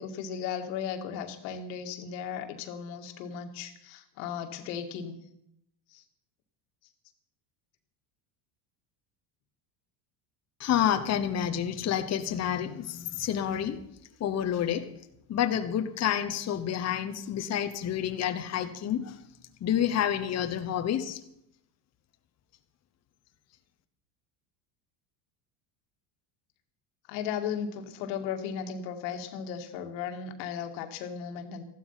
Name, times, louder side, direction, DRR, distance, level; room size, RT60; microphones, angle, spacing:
voice 1, 0.0-5.2 5.9-6.0 27.1-31.6, left 7 dB, 85° left, 6 dB, 2.1 m, -36 dB
voice 2, 10.6-13.8 14.2-14.9 15.3-19.2 19.6-21.2, left 10 dB, 30° left, 7 dB, 1.1 m, -29 dB
14.5 x 12.0 x 5.7 m, 0.77 s
supercardioid pair, 120°, 49 cm